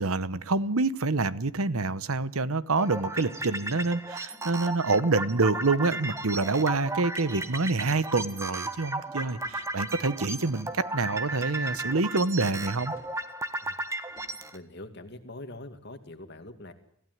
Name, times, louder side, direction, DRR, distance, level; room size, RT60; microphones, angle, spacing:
voice 1, 0.0-12.9, right 3 dB, 75° right, 16 dB, 1.0 m, -27 dB
sound 1, 2.8-14.6, right 2 dB, 15° right, 1.2 m, -35 dB
sound 2, 3.1-3.6 4.3-4.7 5.4-5.9 6.6-7.0 7.7-8.1 9.2-9.7 10.5-10.9 11.6-12.1 12.9-13.2 14.1-14.5, left 2 dB, 15° left, 7.1 m, -59 dB
voice 2, 14.5-16.7, left 2 dB, 50° left, 7 dB, 2.4 m, -43 dB
25.5 x 16.0 x 9.4 m, 0.69 s
head